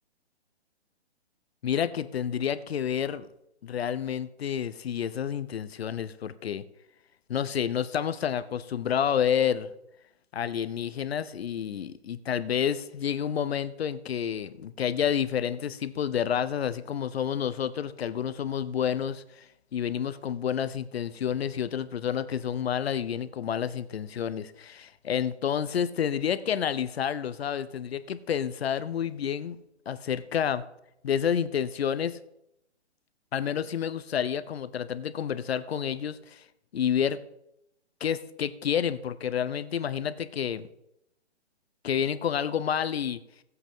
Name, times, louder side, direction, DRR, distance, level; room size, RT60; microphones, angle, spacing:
voice 1, 1.6-3.3 3.6-6.6 7.3-9.7 10.3-19.5 19.7-29.6 29.9-30.6 31.0-32.2 33.3-36.4 36.7-37.2 38.0-40.7 41.8-43.2, left 8 dB, 65° left, 14 dB, 0.8 m, -29 dB
17.0 x 8.0 x 3.7 m, 0.81 s
hypercardioid pair, 155°, 33 cm